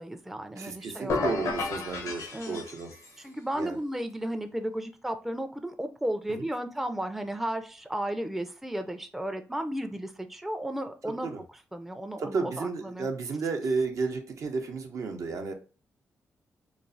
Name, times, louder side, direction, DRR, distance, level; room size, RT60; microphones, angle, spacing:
voice 1, 0.0-1.3 2.3-2.6 3.2-11.3 11.7-13.1, right 1 dB, 5° right, 7 dB, 0.4 m, -34 dB
voice 2, 0.6-2.9 3.5-3.8 6.3-6.5 11.1-11.4 12.2-15.5, right 4 dB, 65° right, 4 dB, 0.5 m, -32 dB
sound 1, 1.1-3.2, left 4 dB, 75° left, 0.6 m, -32 dB
3.0 x 2.0 x 2.5 m, 0.36 s
supercardioid pair, 55°, 6 cm